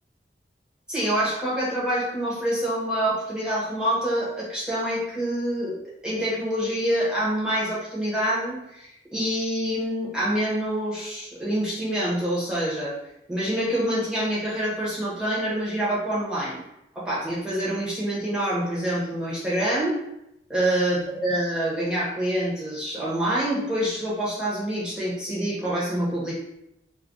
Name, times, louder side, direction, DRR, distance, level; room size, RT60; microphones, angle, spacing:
voice 1, 0.9-5.7 6.0-12.9 13.3-16.6 16.9-20.0 20.5-26.3, right 1 dB, 5° right, -8 dB, 0.9 m, -26 dB
2.4 x 2.3 x 3.7 m, 0.84 s
head